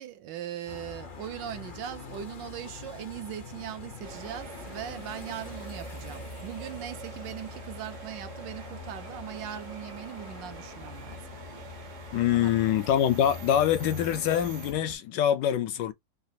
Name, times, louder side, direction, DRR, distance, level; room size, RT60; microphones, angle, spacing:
voice 1, 0.0-11.2 12.3-12.6, right 10 dB, 75° right, 1.2 m, -40 dB
sound 1, 0.7-15.0, left 4 dB, 50° left, 0.6 m, -44 dB
sound 2, 4.0-14.7, right 6 dB, 55° right, 0.8 m, -46 dB
voice 2, 12.1-15.9, left 10 dB, 75° left, 1.1 m, -25 dB
3.9 x 2.4 x 2.6 m
omnidirectional pair, 2.1 m